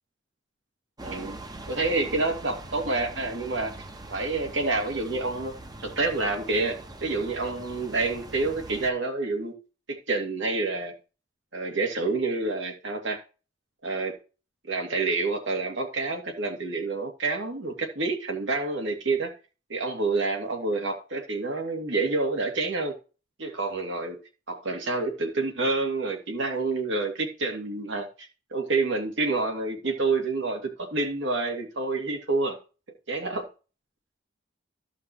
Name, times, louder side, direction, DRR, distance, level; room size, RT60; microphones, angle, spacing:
sound 1, 1.0-8.9, right 2 dB, 20° right, 1.1 m, -42 dB
voice 1, 1.0-1.4 1.7-3.7 4.1-5.6 5.8-9.5 9.9-10.9 11.5-13.2 13.8-14.1 14.7-19.3 19.7-23.0 23.4-24.2 24.5-32.6 33.1-33.5, right 3 dB, 70° right, 2.3 m, -28 dB
14.0 x 5.7 x 3.0 m
head